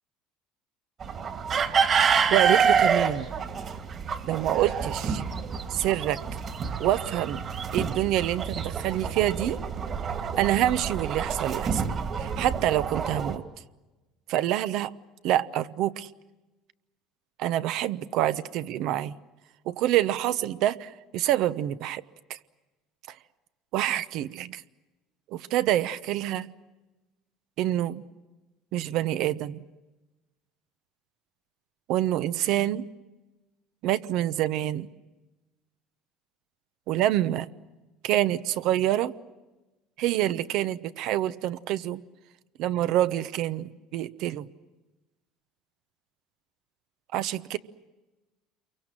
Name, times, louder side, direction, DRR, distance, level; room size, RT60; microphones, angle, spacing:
sound 1, 1.0-13.4, right 6 dB, 40° right, 2.7 m, -27 dB
voice 1, 2.3-3.3 4.3-5.2 5.7-6.2 6.8-7.4 7.7-9.6 10.4-11.8 12.2-13.4 14.3-14.9 15.2-16.1 17.4-19.2 19.7-22.0 22.3-22.4 23.7-24.6 25.3-26.5 27.6-28.0 28.7-29.6 31.9-32.9 33.8-34.9 36.9-37.5 38.0-39.1 40.0-42.0 42.6-44.5 47.1-47.6, right 13 dB, 65° right, 13 dB, 1.0 m, -26 dB
28.5 x 23.5 x 7.6 m, 1.1 s
supercardioid pair, 110°, 0 cm